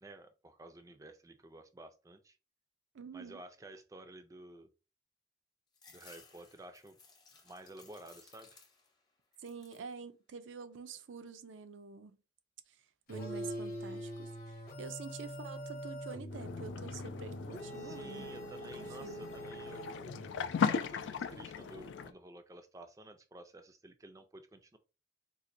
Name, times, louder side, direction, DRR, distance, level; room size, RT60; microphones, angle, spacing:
voice 1, 0.0-2.4 3.1-4.7 5.9-7.0 7.4-8.6 17.8-20.2 20.6-24.8, right 2 dB, 15° right, 0.4 m, -52 dB
voice 2, 2.9-3.4 9.4-12.2 12.7-12.8 13.1-18.5 18.7-19.3, right 5 dB, 85° right, 0.5 m, -47 dB
sound 1, 5.7-9.0 9.3-9.9 10.4-11.1, left 4 dB, 20° left, 0.6 m, -60 dB
sound 2, 13.1-20.6, right 1 dB, 50° left, 0.9 m, -44 dB
sound 3, 16.3-22.1, left 6 dB, 75° left, 0.3 m, -38 dB
4.0 x 2.5 x 2.5 m
head